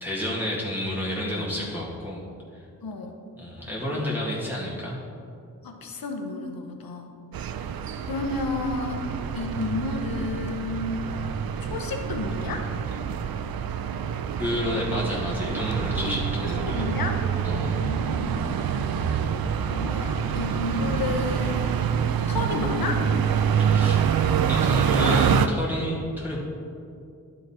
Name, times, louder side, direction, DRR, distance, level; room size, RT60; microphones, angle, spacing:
voice 1, 0.0-2.2 3.4-5.0 14.4-16.9 17.4-17.9 23.6-24.0 24.5-26.4, left 1 dB, 5° right, -7 dB, 1.9 m, -29 dB
voice 2, 2.8-3.1 3.9-4.0 5.6-7.2 8.0-9.0 9.3-11.1 11.6-12.7 16.0-16.1 16.4-17.2 17.8-18.5 19.6-21.8 22.3-23.0, left 3 dB, 80° left, 4 dB, 0.9 m, -31 dB
sound 1, 7.3-25.5, right 8 dB, 85° right, 0.5 m, -26 dB
11.0 x 4.1 x 4.2 m, 2.4 s
cardioid pair, 45°, 35 cm